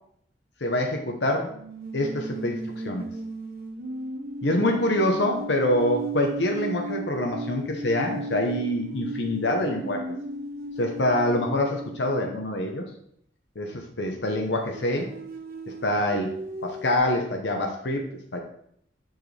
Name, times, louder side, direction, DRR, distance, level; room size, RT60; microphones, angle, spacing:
voice 1, 0.6-1.5 1.9-3.0 4.4-10.0 10.8-12.9 13.6-15.1 15.8-16.3 16.6-18.0 18.3-18.4, left 1 dB, 70° left, 2 dB, 1.0 m, -25 dB
sound 1, 1.5-12.5 14.3-17.0, right 2 dB, 55° right, 0.8 m, -36 dB
7.6 x 6.5 x 3.4 m, 0.67 s
head